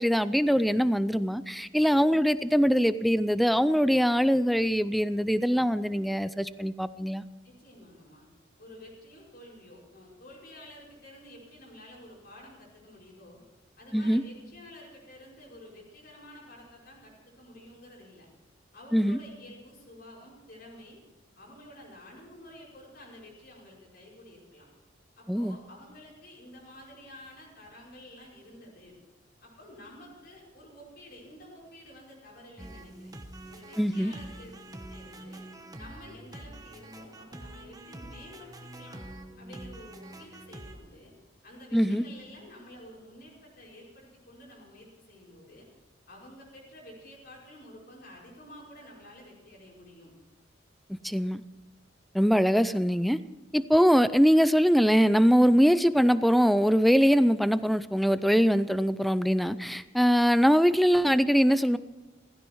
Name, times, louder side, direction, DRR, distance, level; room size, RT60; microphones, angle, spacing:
voice 1, 0.0-7.2 13.9-14.2 18.9-19.2 25.3-25.6 33.8-34.1 41.7-42.0 50.9-51.4 52.1-53.2 53.5-61.8, equal, ahead, 14 dB, 0.4 m, -23 dB
voice 2, 7.4-8.3 8.6-13.4 13.8-18.3 18.7-21.0 21.4-24.7 25.2-29.0 29.4-33.1 33.5-34.6 34.9-35.5 35.8-39.0 39.4-41.1 41.4-45.7 46.1-50.1, left 1 dB, 55° left, -4 dB, 5.3 m, -50 dB
sound 1, 32.6-40.7, right 1 dB, 20° right, 1.1 m, -45 dB
16.0 x 15.5 x 4.7 m, 1.2 s
head